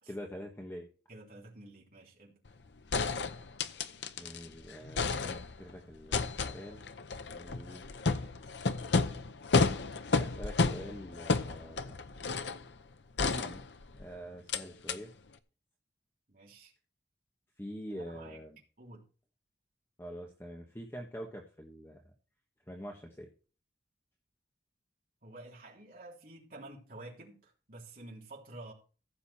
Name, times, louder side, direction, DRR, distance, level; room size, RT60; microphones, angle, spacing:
voice 1, 0.1-0.9 4.2-6.8 7.2-7.8 10.1-12.0 13.3-13.6 13.9-15.1 17.6-18.6 20.0-22.0 22.7-23.3, equal, 15° left, 1.5 m, -45 dB
voice 2, 1.1-2.4 16.3-16.7 17.9-18.4 18.8-19.0 25.2-28.7, right 2 dB, 50° right, 3.5 m, -50 dB
sound 1, 2.5-2.6 2.9-4.5 4.7-5.7 6.1-12.6 13.2-14.0 14.5-14.6 14.9-15.0, left 4 dB, 80° left, 0.8 m, -32 dB
15.0 x 7.0 x 4.3 m
head